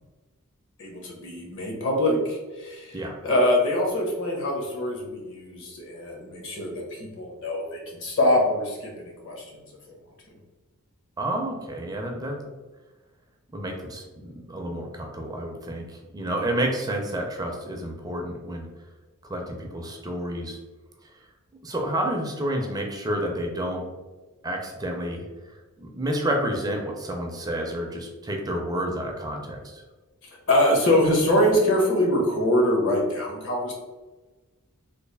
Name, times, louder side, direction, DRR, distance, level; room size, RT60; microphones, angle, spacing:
voice 1, 0.8-9.6 16.3-16.5 30.2-33.7, left 1 dB, 60° left, -1 dB, 1.0 m, -24 dB
voice 2, 11.2-12.4 13.5-15.9 16.1-18.7 19.3-20.6 21.6-23.8 24.4-25.3 25.8-29.8, right 1 dB, 20° right, 2 dB, 0.4 m, -30 dB
3.2 x 2.4 x 3.3 m, 1.2 s
head